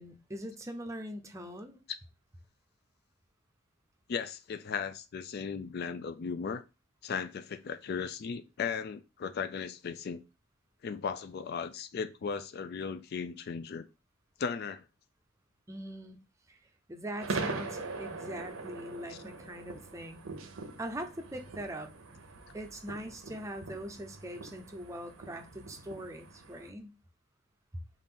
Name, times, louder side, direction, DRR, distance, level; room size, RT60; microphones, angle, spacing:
voice 1, 0.0-1.8 15.7-16.2 16.5-16.6 16.9-20.2 20.8-21.9 22.5-27.0, right 1 dB, 15° right, 0.5 m, -42 dB
voice 2, 4.1-6.6 7.0-10.2 10.8-13.9 14.4-14.9 19.1-19.2, left 6 dB, 50° left, 0.3 m, -36 dB
sound 1, 17.2-26.7, right 3 dB, 90° right, 0.8 m, -42 dB
5.5 x 2.5 x 3.7 m
head